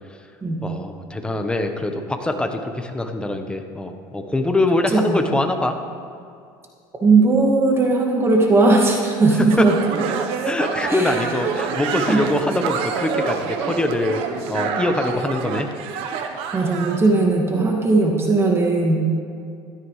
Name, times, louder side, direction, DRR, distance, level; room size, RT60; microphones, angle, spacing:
voice 1, 0.6-5.8 9.4-9.5 10.4-14.2 14.5-15.7, left 2 dB, 10° left, 5 dB, 1.1 m, -23 dB
voice 2, 4.9-5.2 7.0-9.7 10.9-11.3 12.1-12.2 16.5-19.0, right 3 dB, 25° right, 0 dB, 2.0 m, -18 dB
sound 1, 9.5-17.0, right 6 dB, 65° right, 1.1 m, -27 dB
16.0 x 13.0 x 3.3 m, 2.3 s
supercardioid pair, 105°, 10 cm